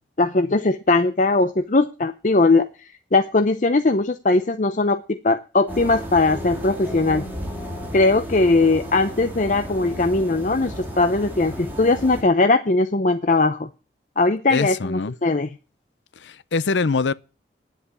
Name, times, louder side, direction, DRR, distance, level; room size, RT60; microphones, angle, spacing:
voice 1, 0.2-2.7 3.1-7.2 7.9-13.7 14.2-15.5, left 3 dB, 45° left, 0.6 m, -19 dB
sound 1, 5.7-12.2, equal, 10° right, 3.0 m, -33 dB
voice 2, 14.5-15.1 16.2-17.1, left 4 dB, 80° left, 0.6 m, -23 dB
10.0 x 8.2 x 8.3 m
head